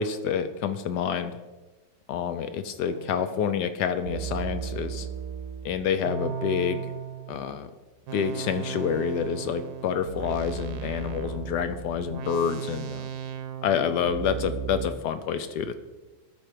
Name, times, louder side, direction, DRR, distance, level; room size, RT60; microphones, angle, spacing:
voice 1, 0.0-1.3 2.1-5.1 5.6-6.9 7.3-7.7 8.1-13.1 13.6-15.7, left 7 dB, 75° left, 11 dB, 1.0 m, -28 dB
sound 1, 2.9-3.2 4.1-7.4 8.1-14.9, right 7 dB, 65° right, 1.2 m, -35 dB
13.5 x 4.6 x 4.9 m, 1.2 s
omnidirectional pair, 2.2 m